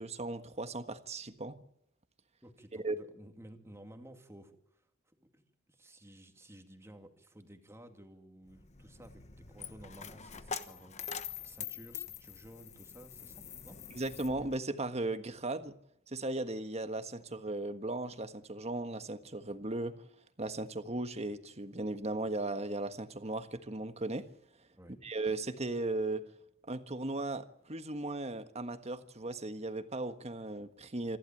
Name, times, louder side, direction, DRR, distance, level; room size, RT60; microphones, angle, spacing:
voice 1, 0.0-1.6 2.7-2.9 13.9-15.7 16.1-20.1 20.4-24.3 25.0-26.2 26.7-31.2, right 2 dB, 30° right, 9 dB, 1.5 m, -37 dB
voice 2, 2.4-11.1 11.4-13.8 24.8-25.0, right 1 dB, 15° right, 5 dB, 2.4 m, -54 dB
Coin (dropping), 8.5-14.6, left 7 dB, 35° left, 1.2 m, -45 dB
27.0 x 12.0 x 9.1 m, 0.77 s
head